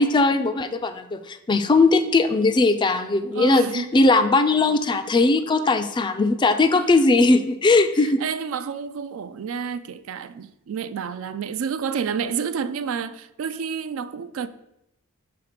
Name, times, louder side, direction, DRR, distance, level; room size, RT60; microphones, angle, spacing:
voice 1, 0.0-8.2, left 3 dB, 20° left, 0.3 m, -19 dB
voice 2, 3.4-3.9 5.4-5.8 6.7-6.9 8.0-14.5, right 6 dB, 65° right, 0.3 m, -30 dB
5.9 x 4.0 x 5.0 m
head